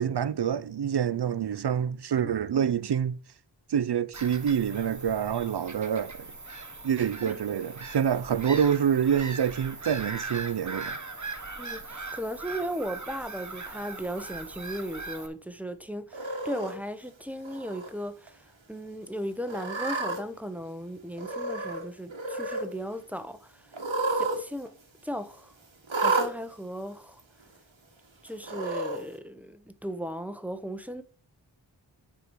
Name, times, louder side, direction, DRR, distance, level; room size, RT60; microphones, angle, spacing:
voice 1, 0.0-3.2 3.7-6.3 6.8-10.9, right 8 dB, 60° right, 0.5 m, -27 dB
Bird vocalization bird call bird song / Gull seagull, 4.1-15.3, right 3 dB, 40° right, 1.2 m, -40 dB
voice 2, 11.6-18.3 18.7-23.5 24.2-24.7 25.0-25.5 25.9-27.2 28.2-31.0, equal, 5° right, 0.8 m, -36 dB
Cat, 16.1-16.7 17.4-17.9 18.3-18.4 19.5-20.2 21.2-21.8 22.1-22.7 23.7-24.4 24.7-24.8 25.9-26.3 27.2-27.3 28.4-29.0, right 3 dB, 80° right, 1.6 m, -30 dB
8.8 x 5.0 x 4.6 m
wide cardioid pair, 45°, 46 cm